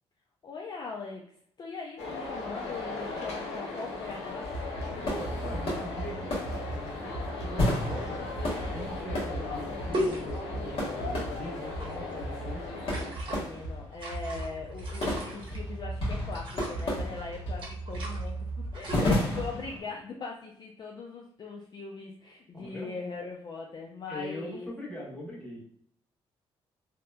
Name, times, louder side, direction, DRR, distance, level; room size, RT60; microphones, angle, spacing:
voice 1, 0.4-1.3 1.6-4.5 13.2-18.5 18.7-24.7, left 4 dB, 40° left, 0 dB, 0.4 m, -40 dB
sound 1, 2.0-13.1, left 3 dB, 85° left, 0.6 m, -38 dB
sound 2, 4.4-19.8, equal, 60° left, 1.2 m, -33 dB
voice 2, 4.9-8.3 8.7-12.6 22.5-22.9 24.1-25.6, equal, 10° left, -5 dB, 1.2 m, -41 dB
sound 3, 9.0-9.1 9.9-10.7 11.6-12.1 12.8-13.4 13.9-15.6 16.3-16.9 17.6-18.3 18.6-19.1, equal, 50° right, 0.9 m, -36 dB
2.8 x 2.1 x 2.3 m, 0.63 s
cardioid pair, 80°, 11 cm